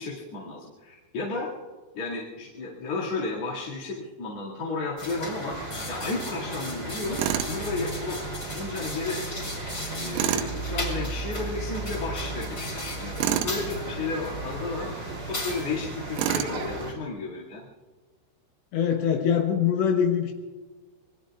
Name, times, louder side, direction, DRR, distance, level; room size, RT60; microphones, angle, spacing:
voice 1, 0.0-1.5 1.9-5.6 5.9-7.2 7.5-8.2 8.5-9.2 9.9-14.9 15.2-17.7, left 3 dB, 45° left, -6 dB, 2.5 m, -33 dB
sound 1, 5.0-16.9, left 2 dB, 25° left, 4.6 m, -37 dB
sound 2, 5.5-16.9, right 4 dB, 75° right, 3.9 m, -37 dB
Tools, 7.2-7.6 10.1-10.5 13.2-13.6 16.2-16.6, right 11 dB, 90° right, 3.4 m, -26 dB
voice 2, 18.7-20.3, left 8 dB, 75° left, 3 dB, 3.1 m, -23 dB
27.5 x 21.5 x 2.4 m, 1.3 s
omnidirectional pair, 5.5 m